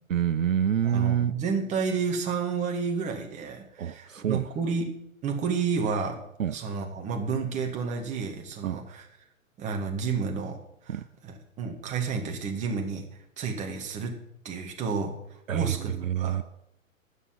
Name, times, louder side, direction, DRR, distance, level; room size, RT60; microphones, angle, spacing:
voice 1, 0.1-1.3 3.8-4.5 6.4-6.6 8.6-8.8 10.9-11.0 15.5-16.4, right 9 dB, 70° right, 13 dB, 0.6 m, -27 dB
voice 2, 0.8-4.9 5.2-6.2 6.5-9.1 9.6-10.6 10.9-13.1 13.4-14.2 14.4-16.4, right 5 dB, 15° right, 2 dB, 1.9 m, -31 dB
12.0 x 8.3 x 5.7 m, 0.76 s
figure-of-eight pair, 120°, 41 cm